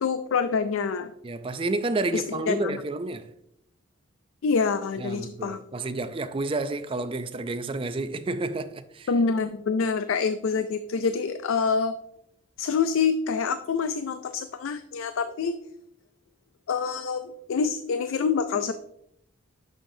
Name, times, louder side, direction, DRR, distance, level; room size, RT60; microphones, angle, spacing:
voice 1, 0.0-1.1 2.1-2.8 4.4-5.6 9.1-11.9 12.6-15.6 16.7-18.7, left 5 dB, 85° left, 0.4 m, -26 dB
voice 2, 1.2-3.3 5.0-9.1, right 2 dB, 25° right, 0.4 m, -30 dB
8.8 x 6.5 x 2.7 m
head